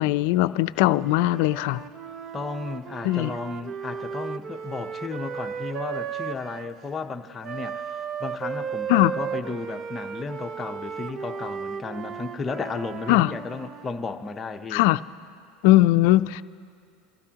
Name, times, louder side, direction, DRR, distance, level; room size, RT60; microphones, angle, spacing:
voice 1, 0.0-1.8 3.0-3.3 8.9-9.1 13.1-13.3 14.7-15.0 15.6-16.4, left 17 dB, 70° left, 14 dB, 0.4 m, -20 dB
Wind instrument woodwind instrument, 1.0-6.7 7.4-13.9, right 7 dB, 40° right, 0.6 m, -35 dB
voice 2, 2.3-14.8, left 4 dB, 20° left, 6 dB, 0.8 m, -34 dB
27.5 x 14.5 x 2.9 m, 2.4 s
supercardioid pair, 120°, 0 cm